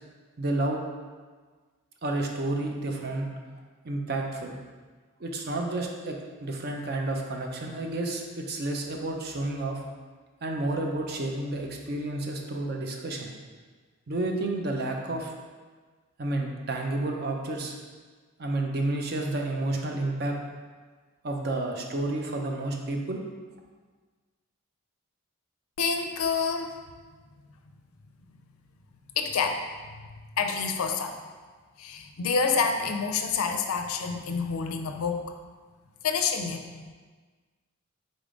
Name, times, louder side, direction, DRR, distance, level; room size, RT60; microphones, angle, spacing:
voice 1, 0.4-0.8 2.0-3.4 3.8-4.6 5.2-9.8 10.4-13.3 14.1-15.3 16.2-17.8 18.4-20.4 21.2-23.2, right 2 dB, 45° right, 2 dB, 0.5 m, -30 dB
voice 2, 25.8-26.8 29.2-30.0 30.4-31.2 31.8-35.3 36.0-36.9, left 5 dB, 85° left, 5 dB, 0.4 m, -28 dB
3.9 x 3.6 x 3.7 m, 1.4 s
head